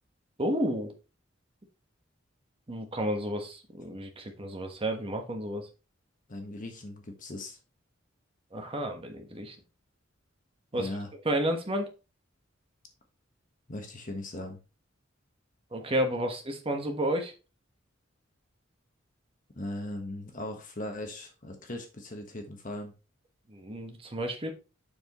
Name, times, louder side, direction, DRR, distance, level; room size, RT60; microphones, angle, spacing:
voice 1, 0.4-0.9 2.7-5.7 8.5-9.5 10.7-10.9 11.2-11.9 15.7-17.3 23.5-24.5, right 1 dB, 30° right, 4 dB, 1.4 m, -31 dB
voice 2, 6.3-7.6 10.7-11.1 13.7-14.6 19.5-22.9, left 1 dB, 40° left, 4 dB, 1.4 m, -39 dB
7.0 x 6.1 x 3.1 m, 0.31 s
head